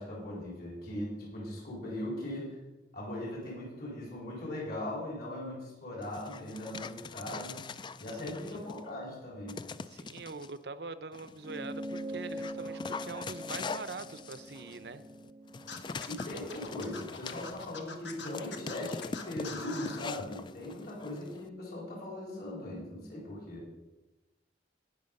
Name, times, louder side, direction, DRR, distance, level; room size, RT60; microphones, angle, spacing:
voice 1, 0.0-2.6 2.9-7.7 8.0-9.8 16.1-23.6, left 1 dB, 55° left, -4 dB, 4.1 m, -39 dB
Dog, 6.0-8.9 9.5-10.5 11.1-21.5, left 4 dB, 25° left, 0.3 m, -43 dB
voice 2, 8.2-8.6 9.9-15.0, right 4 dB, 65° right, 13 dB, 0.6 m, -43 dB
sound 1, 11.4-16.2, right 1 dB, 10° right, 0.7 m, -43 dB
Scratching (performance technique), 15.7-20.0, left 5 dB, 80° left, 1.4 m, -43 dB
18.0 x 6.2 x 5.3 m, 1.1 s
head